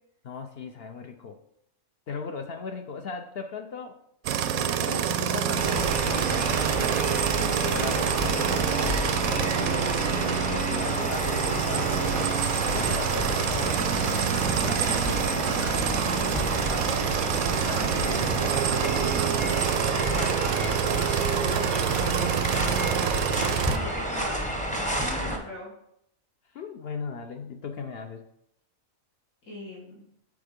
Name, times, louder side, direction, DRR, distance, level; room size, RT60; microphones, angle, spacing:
voice 1, 0.2-1.4 2.1-4.0 4.5-6.7 7.6-9.9 10.5-12.4 12.7-13.9 17.7-18.2 19.9-21.2 22.2-23.8 25.2-25.3 26.5-28.2, left 5 dB, 60° left, 5 dB, 0.7 m, -38 dB
sound 1, 4.2-23.8, right 9 dB, 90° right, 1.0 m, -27 dB
sound 2, 5.6-25.4, equal, 10° left, 0.6 m, -30 dB
voice 2, 10.7-11.2 14.6-17.2 17.7-19.2 21.8-22.3 23.6-25.7 29.5-30.0, left 1 dB, 85° left, -6 dB, 2.4 m, -40 dB
7.1 x 4.4 x 5.1 m, 0.76 s
omnidirectional pair, 1.4 m